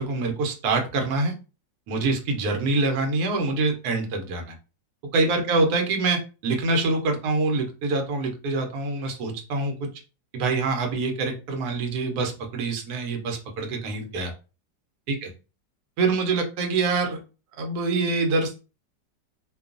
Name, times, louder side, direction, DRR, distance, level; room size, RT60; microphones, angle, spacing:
voice 1, 0.0-1.3 1.9-4.5 5.1-9.9 10.3-14.3 15.1-15.3 16.0-17.2 17.6-18.6, right 3 dB, 65° right, 4 dB, 1.1 m, -25 dB
2.9 x 2.2 x 2.4 m, 0.32 s
omnidirectional pair, 1.9 m